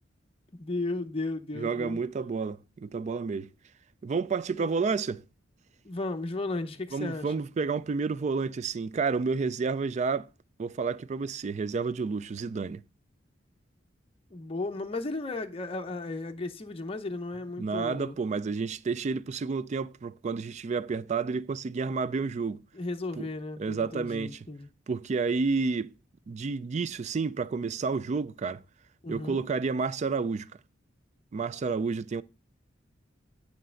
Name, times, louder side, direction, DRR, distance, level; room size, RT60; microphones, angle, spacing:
voice 1, 0.5-2.0 4.6-4.7 5.8-7.3 14.3-18.2 22.7-24.7 29.0-29.5, left 2 dB, 30° left, 0.7 m, -35 dB
voice 2, 1.5-3.5 4.0-5.2 6.9-10.3 10.6-12.8 17.6-22.6 23.2-23.3 23.6-24.4 24.9-25.9 26.3-28.6 29.1-30.5 31.3-32.2, right 4 dB, 35° right, 0.3 m, -30 dB
9.2 x 3.3 x 6.3 m
head